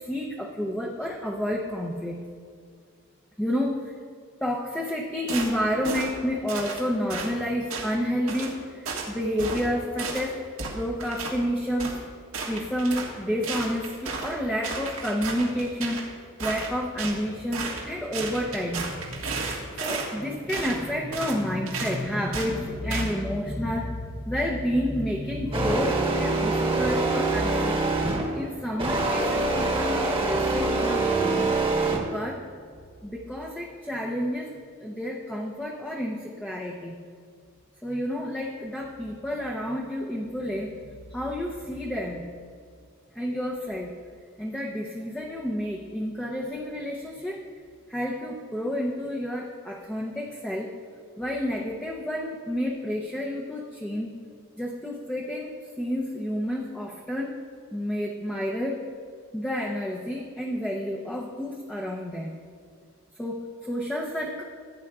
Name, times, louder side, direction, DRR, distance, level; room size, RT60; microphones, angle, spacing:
voice 1, 0.0-2.2 3.4-3.9 4.4-10.3 10.7-12.0 12.5-16.1 16.4-19.5 19.8-27.8 28.4-31.5 32.1-32.4 33.0-34.5 34.8-37.0 37.8-40.7 41.1-42.2 43.1-43.9 44.4-47.4 47.9-50.7 51.2-54.2 54.6-57.4 57.7-58.8 59.3-62.4 63.2-64.4, equal, 5° left, -4 dB, 0.7 m, -30 dB
sound 1, 5.3-5.5 5.8-6.1 6.5-6.8 7.1-7.3 7.7-7.9 8.3-8.5 8.9-9.1 9.4-9.7 10.0-10.3 10.6-11.4 11.8-12.0 12.3-13.1 13.4-14.3 14.6-16.1 16.4-17.2 17.5-17.8 18.1-20.1 20.5-20.8 21.1-21.4 21.7-22.0 22.3-22.5 22.9-23.1, right 4 dB, 90° right, 1.6 m, -33 dB
sound 2, 25.5-28.3 28.8-32.0, right 3 dB, 25° right, 1.2 m, -25 dB
15.5 x 9.1 x 2.4 m, 2.1 s
head